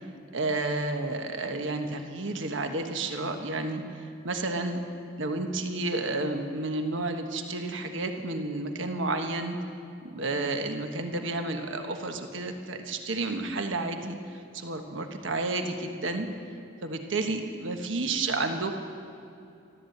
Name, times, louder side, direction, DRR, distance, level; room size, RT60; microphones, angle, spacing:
voice 1, 0.3-3.8 4.2-4.8 5.2-9.6 10.1-16.3 16.8-18.7, right 2 dB, 70° right, 5 dB, 1.2 m, -31 dB
13.5 x 12.5 x 7.9 m, 2.6 s
head